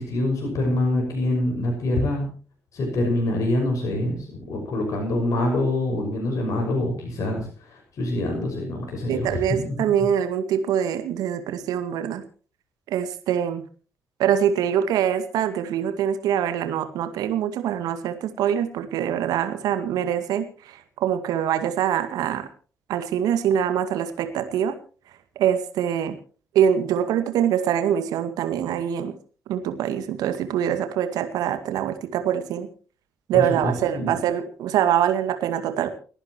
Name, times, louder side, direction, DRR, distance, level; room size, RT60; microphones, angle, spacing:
voice 1, 0.0-2.3 2.7-9.7 33.3-34.2, left 1 dB, 50° left, 2 dB, 6.1 m, -25 dB
voice 2, 9.1-12.2 12.9-13.6 14.2-20.4 21.0-22.5 22.9-24.7 25.4-26.2 26.5-29.1 29.5-32.7 33.3-35.9, right 9 dB, 65° right, 9 dB, 2.1 m, -24 dB
29.5 x 10.5 x 3.1 m, 0.40 s
figure-of-eight pair, 45°, 7 cm